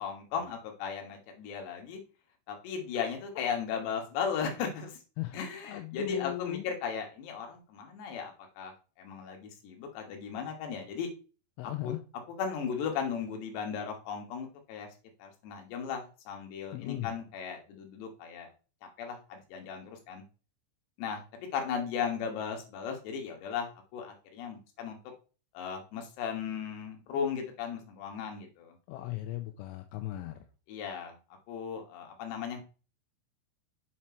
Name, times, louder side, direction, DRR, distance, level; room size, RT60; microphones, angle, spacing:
voice 1, 0.0-2.0 2.5-5.0 5.3-8.3 8.6-8.7 9.0-11.1 11.6-11.9 12.4-14.9 15.2-18.5 18.8-20.2 21.0-25.0 25.5-28.7 30.7-31.1 31.5-32.6, left 7 dB, 70° left, 3 dB, 3.4 m, -36 dB
voice 2, 5.6-6.6 11.6-12.0 16.7-17.1 28.9-30.4, left 15 dB, 85° left, 6 dB, 3.1 m, -37 dB
7.2 x 4.4 x 4.4 m, 0.34 s
omnidirectional pair, 5.6 m